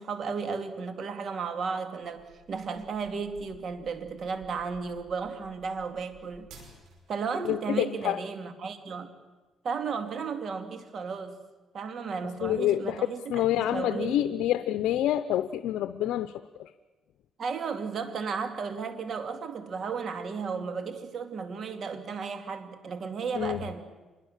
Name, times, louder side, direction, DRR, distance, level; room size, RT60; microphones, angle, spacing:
voice 1, 0.0-6.5 7.1-9.1 9.6-11.4 11.7-14.3 17.4-23.9, right 5 dB, 55° right, 8 dB, 2.5 m, -34 dB
sound 1, 2.1-7.2, right 3 dB, 85° right, 5.5 m, -54 dB
voice 2, 7.4-8.2 12.4-16.3 16.6-16.7 23.4-23.6, left 12 dB, 85° left, 12 dB, 0.7 m, -27 dB
25.5 x 21.5 x 7.4 m, 1.3 s
cardioid pair, 90°, 0 cm